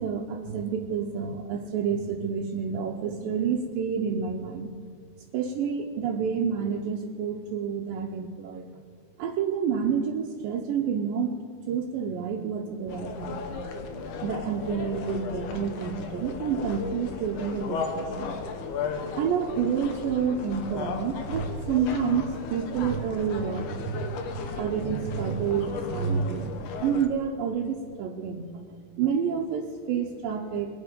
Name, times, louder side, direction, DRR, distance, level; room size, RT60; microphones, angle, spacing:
voice 1, 0.0-4.7 5.3-8.6 9.2-11.3 11.7-13.4 14.2-18.3 19.2-23.6 24.6-26.5 26.8-28.4 29.0-30.7, right 6 dB, 80° right, 1 dB, 2.4 m, -29 dB
sound 1, 12.9-27.1, left 5 dB, 70° left, 2.3 m, -35 dB
21.5 x 8.2 x 5.2 m, 2.2 s
omnidirectional pair, 4.2 m